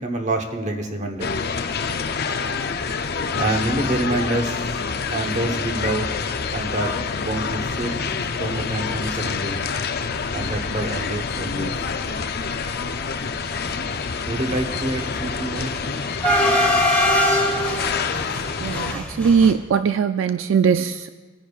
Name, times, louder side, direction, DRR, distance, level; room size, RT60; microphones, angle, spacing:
voice 1, 0.0-1.3 3.4-4.7 5.1-6.1 6.5-9.6 10.3-11.7 14.2-15.7, right 1 dB, 35° right, 4 dB, 1.1 m, -27 dB
sound 1, 1.2-18.9, left 5 dB, 50° left, 0.5 m, -27 dB
sound 2, 3.5-3.8 4.2-4.3 4.5-4.7 5.5-5.6 6.0-6.2 6.5-6.6 7.0-9.2 9.4-10.1 10.4-19.5, left 1 dB, 5° left, 1.2 m, -25 dB
voice 2, 18.6-21.1, right 6 dB, 70° right, 10 dB, 0.3 m, -20 dB
21.0 x 10.0 x 2.4 m, 1.3 s
head